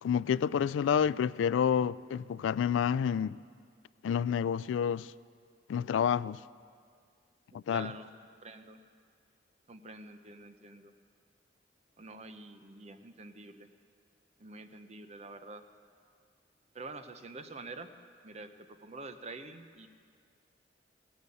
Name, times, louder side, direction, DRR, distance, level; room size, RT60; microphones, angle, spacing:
voice 1, 0.0-3.4 4.0-5.1 5.7-6.4 7.5-7.9, left 8 dB, 85° left, 0.3 m, -29 dB
voice 2, 7.5-8.1 8.4-8.8 9.7-10.9 12.0-13.7 14.4-15.6 16.7-17.9 18.2-18.5 18.8-19.9, right 3 dB, 35° right, 0.7 m, -47 dB
17.0 x 9.4 x 8.4 m
head